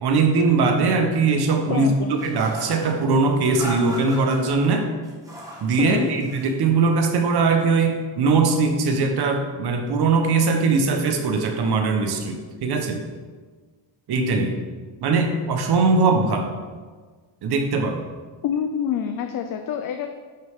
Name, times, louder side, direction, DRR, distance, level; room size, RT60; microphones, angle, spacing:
voice 1, 0.0-4.9 5.6-13.0 14.1-14.6 15.0-16.5 17.4-18.0, right 4 dB, 60° right, 5 dB, 1.2 m, -21 dB
voice 2, 1.7-2.1 5.8-6.1 18.4-20.1, left 8 dB, 50° left, 6 dB, 0.5 m, -26 dB
sound 1, 2.2-2.9 3.5-4.4 5.0-5.7 6.0-6.6, equal, 10° right, 1.4 m, -36 dB
10.5 x 6.5 x 3.6 m, 1.4 s
cardioid pair, 175°, 45 cm